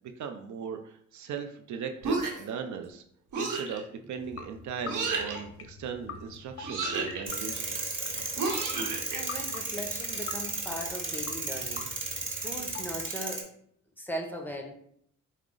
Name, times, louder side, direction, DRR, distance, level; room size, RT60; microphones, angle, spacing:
voice 1, 0.2-3.0 3.4-8.0, right 7 dB, 70° right, 6 dB, 0.5 m, -38 dB
sound 1, 2.0-2.6 3.3-3.8 4.9-5.4 6.6-7.2 8.4-9.2, right 3 dB, 85° right, 0.9 m, -31 dB
sound 2, 4.2-13.1, left 5 dB, 45° left, 0.6 m, -46 dB
sound 3, 7.3-13.4, right 3 dB, 40° right, 1.1 m, -34 dB
voice 2, 9.1-13.5 14.0-14.7, equal, 5° left, 2 dB, 0.9 m, -39 dB
4.7 x 2.1 x 3.7 m, 0.67 s
cardioid pair, 65°, 31 cm